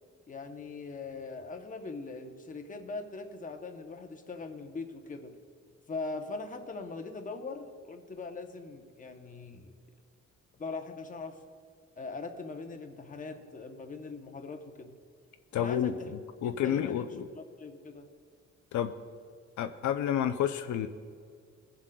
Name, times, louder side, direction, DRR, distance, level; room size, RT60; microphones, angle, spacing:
voice 1, 0.3-5.4 5.9-9.7 10.6-11.4 12.0-15.0 15.6-16.1 16.4-18.1, left 3 dB, 25° left, 5 dB, 0.8 m, -41 dB
voice 2, 15.5-17.3 18.7-18.9 19.6-20.9, left 9 dB, 75° left, 9 dB, 0.5 m, -30 dB
21.0 x 7.4 x 2.3 m, 2.2 s
cardioid pair, 135°, 29 cm